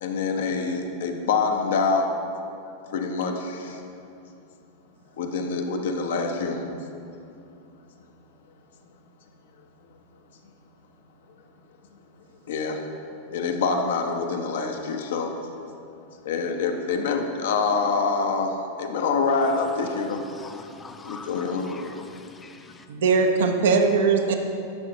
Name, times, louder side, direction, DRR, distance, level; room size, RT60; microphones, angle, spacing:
voice 1, 0.0-2.1 2.9-3.8 5.2-6.6 12.5-12.8 13.3-15.3 16.2-20.2 21.0-21.9, left 4 dB, 60° left, 4 dB, 0.7 m, -26 dB
voice 2, 19.8-22.9, left 3 dB, 15° left, 7 dB, 0.5 m, -44 dB
voice 3, 22.9-24.4, right 4 dB, 60° right, 4 dB, 0.7 m, -20 dB
10.0 x 6.6 x 2.8 m, 2.6 s
figure-of-eight pair, 90°, 0 cm